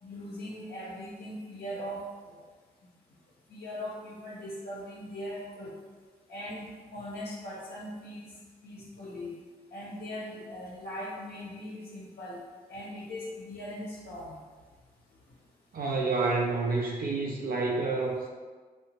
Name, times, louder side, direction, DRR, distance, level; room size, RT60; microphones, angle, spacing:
voice 1, 0.0-2.3 3.5-5.7 6.3-8.3 8.6-9.3 9.7-12.4 12.7-14.4, equal, 70° left, -6 dB, 0.6 m, -40 dB
voice 2, 15.7-18.3, right 3 dB, 55° right, -1 dB, 0.4 m, -29 dB
2.8 x 2.1 x 2.7 m, 1.4 s
supercardioid pair, 45°, 17 cm